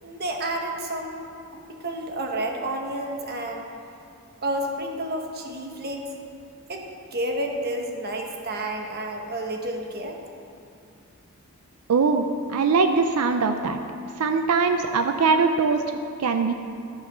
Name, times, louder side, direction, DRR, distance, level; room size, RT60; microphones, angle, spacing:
voice 1, 0.0-1.3 1.8-3.7 4.4-6.1 6.7-10.2, right 1 dB, 45° right, 2 dB, 1.1 m, -30 dB
voice 2, 11.9-12.2 12.5-13.8 14.2-15.8 16.2-16.5, right 4 dB, 85° right, 7 dB, 0.5 m, -21 dB
13.0 x 4.9 x 6.7 m, 2.5 s
head